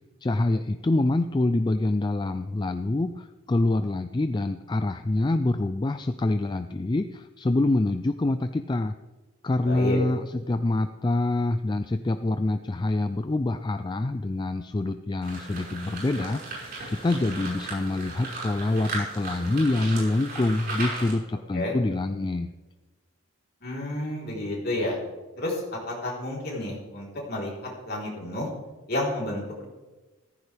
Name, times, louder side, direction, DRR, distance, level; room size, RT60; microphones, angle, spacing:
voice 1, 0.2-8.9 9.4-22.5, left 2 dB, 20° left, 9 dB, 0.3 m, -26 dB
voice 2, 9.6-10.0 21.5-21.8 23.6-25.0 25.4-27.5 27.8-28.5 28.9-29.6, left 1 dB, 45° left, -3 dB, 3.9 m, -30 dB
sound 1, 15.2-21.1, right 2 dB, 45° right, 5.4 m, -36 dB
15.0 x 14.0 x 3.4 m, 1.2 s
head